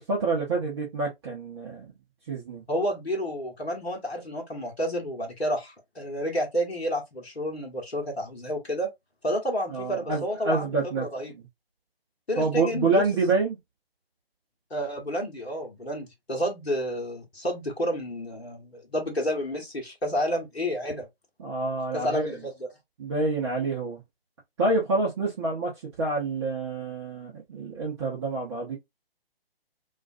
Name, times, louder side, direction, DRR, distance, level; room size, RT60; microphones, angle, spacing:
voice 1, 0.1-1.9 2.3-2.6 9.7-11.1 11.3-11.4 12.4-13.6 21.4-22.4 23.0-24.0 24.6-25.7 26.0-28.8, right 3 dB, 25° right, 0.7 m, -27 dB
voice 2, 2.7-8.9 9.2-11.3 12.3-13.0 14.7-21.1 21.9-22.7, equal, 90° left, 1.0 m, -30 dB
2.4 x 2.3 x 2.4 m
figure-of-eight pair, 140°, 30 cm